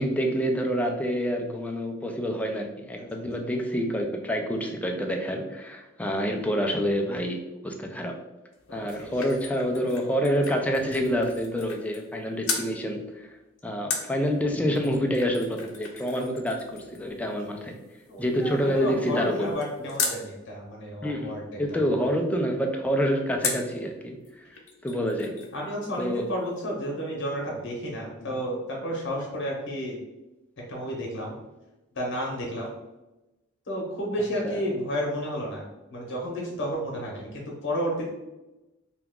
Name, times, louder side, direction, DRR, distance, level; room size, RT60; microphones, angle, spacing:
voice 1, 0.0-8.1 8.7-13.3 13.6-17.8 18.2-19.5 21.0-21.3 21.6-24.5 24.8-25.3 26.0-26.3 34.4-34.6, equal, 5° left, 2 dB, 0.3 m, -27 dB
sound 1, 8.5-12.2 12.4-12.7 13.9-20.2 23.4-23.8 24.2-24.3 24.6-25.6 25.8-25.9, left 5 dB, 85° left, 0.6 m, -36 dB
voice 2, 8.7-9.1 18.1-21.8 25.5-30.0 30.7-31.4 31.9-32.7 33.7-38.1, equal, 60° left, -2 dB, 0.8 m, -32 dB
2.9 x 2.3 x 3.6 m, 1.0 s
head